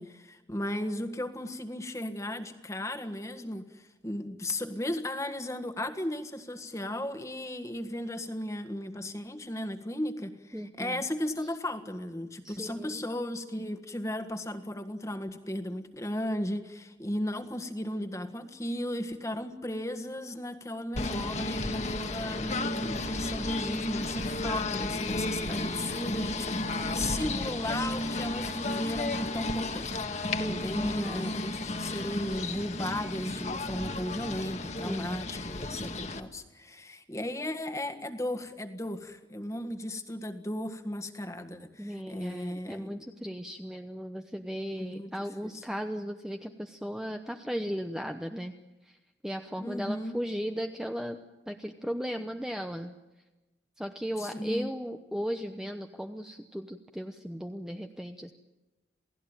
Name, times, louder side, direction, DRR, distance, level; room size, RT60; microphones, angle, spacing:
voice 1, 0.0-43.0 44.8-45.1 45.4-45.6 49.6-50.2 54.2-54.7, left 1 dB, 15° left, 8 dB, 1.6 m, -36 dB
voice 2, 10.5-11.0 12.4-13.1 30.4-31.3 32.3-32.5 34.8-35.2 41.8-48.5 48.8-49.0 49.2-51.2 51.5-52.9 53.8-58.3, equal, 5° right, 5 dB, 0.8 m, -36 dB
Singing / Bird, 20.9-36.2, left 2 dB, 40° left, 1.5 m, -33 dB
28.0 x 18.0 x 9.0 m, 1.1 s
head